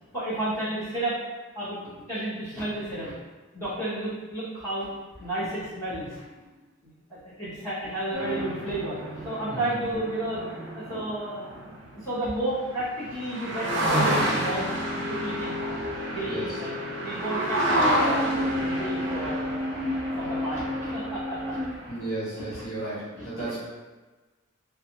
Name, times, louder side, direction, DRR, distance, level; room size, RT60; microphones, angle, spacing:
voice 1, 0.1-1.2 1.5-1.8 2.1-3.1 3.5-4.9 5.2-6.2 7.1-11.6 12.0-15.6 16.1-19.7 20.2-21.6 22.3-22.6 23.1-23.3, right 1 dB, 15° left, -14 dB, 0.9 m, -32 dB
sound 1, 8.1-12.2 12.8-12.9 13.1-22.1, equal, 55° right, 0.4 m, -29 dB
voice 2, 16.3-16.6 21.9-23.6, right 2 dB, 85° left, -10 dB, 1.4 m, -34 dB
2.6 x 2.4 x 2.8 m, 1.2 s
head